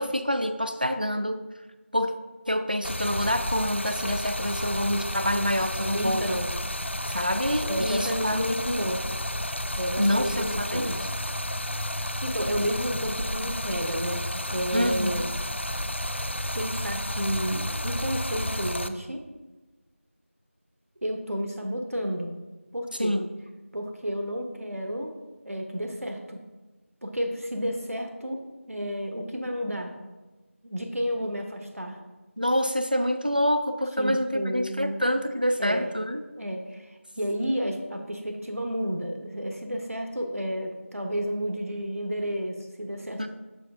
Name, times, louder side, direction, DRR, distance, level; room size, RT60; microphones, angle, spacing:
voice 1, 0.0-1.4 1.9-2.1 2.5-6.3 7.1-8.9 10.0-11.1 14.7-15.2 23.0-23.3 32.4-36.2 43.2-43.3, equal, 40° right, 9 dB, 0.3 m, -27 dB
Stream, 2.8-18.9, left 1 dB, 55° left, 0.4 m, -31 dB
voice 2, 5.9-6.5 7.7-8.5 8.8-9.0 9.7-10.9 11.8-14.2 14.5-15.3 16.5-19.2 21.0-22.3 22.7-23.2 23.7-25.1 25.4-26.4 27.0-28.4 28.7-29.9 30.6-32.0 34.0-35.0 35.6-35.9 36.4-43.3, equal, 80° right, 3 dB, 1.0 m, -31 dB
7.5 x 4.2 x 3.5 m, 1.2 s
figure-of-eight pair, 180°, 8 cm